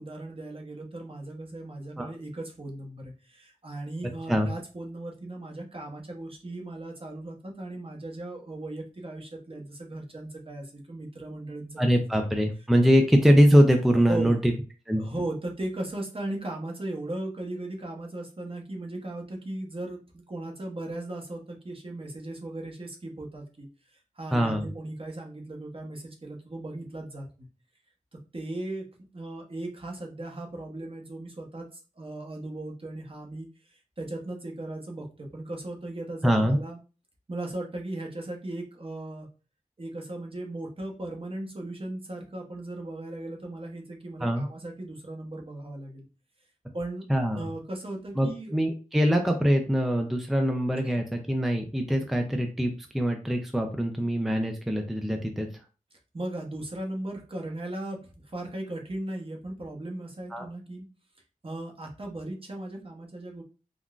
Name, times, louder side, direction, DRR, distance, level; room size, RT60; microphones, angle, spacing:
voice 1, 0.0-11.8 14.1-14.3 15.0-23.7 24.2-27.5 28.3-28.9 29.1-36.8 37.3-39.3 39.8-46.0 46.7-47.1 47.3-48.5 50.8-50.9 56.1-60.9 61.4-63.4, right 1 dB, 40° right, 1 dB, 0.9 m, -37 dB
voice 2, 11.8-14.5 14.9-15.0 24.3-24.7 36.2-36.6 44.2-44.5 47.1-47.5 48.2-55.5 60.3-60.4, equal, ahead, 4 dB, 0.5 m, -23 dB
3.7 x 2.1 x 2.4 m, 0.34 s
cardioid pair, 40°, 14 cm